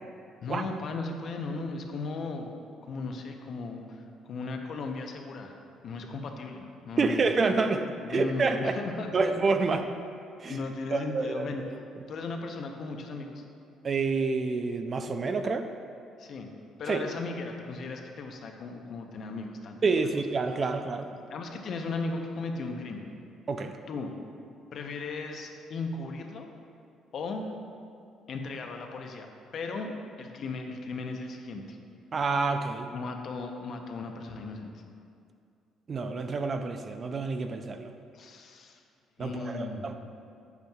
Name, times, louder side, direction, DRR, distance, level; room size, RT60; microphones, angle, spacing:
voice 1, 0.4-5.5 5.8-7.2 8.0-9.3 9.7-9.8 10.5-11.6 12.1-13.4 16.2-16.5 16.8-20.1 21.3-23.1 23.9-24.1 24.7-26.5 27.1-27.5 28.3-29.3 29.5-29.9 30.2-31.8 32.9-34.7 38.1-38.8 39.2-39.9, left 3 dB, 45° left, 3 dB, 0.7 m, -36 dB
voice 2, 7.0-8.8 9.1-9.9 10.4-10.6 10.9-11.7 13.8-15.7 16.9-17.0 19.8-21.1 23.5-23.8 32.1-32.9 35.9-37.9 39.2-39.9, right 4 dB, 30° right, 7 dB, 0.3 m, -28 dB
8.7 x 8.0 x 2.3 m, 2.4 s
cardioid pair, 150°, 0 cm